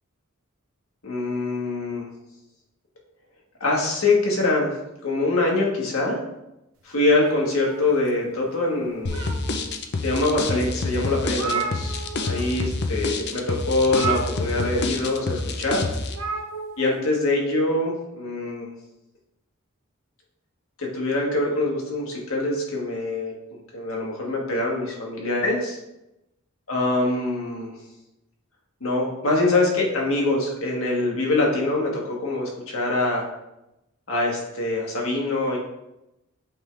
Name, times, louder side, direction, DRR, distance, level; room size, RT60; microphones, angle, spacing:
voice 1, 1.0-2.1 3.6-4.7 5.0-6.2 6.8-9.2 10.0-12.0 12.2-15.8 16.8-18.7 20.8-25.8 26.7-27.7 28.8-33.2 34.1-35.6, left 2 dB, 70° left, -2 dB, 1.6 m, -24 dB
sound 1, 7.2-8.4 8.8-9.7 10.3-10.4 10.8-10.9 11.1-12.5 12.7-12.9 13.8-14.9 16.1-16.9, right 6 dB, 75° right, 0.9 m, -33 dB
sound 2, 9.1-16.2, left 3 dB, 55° left, 0.6 m, -27 dB
8.3 x 3.7 x 3.3 m, 0.91 s
head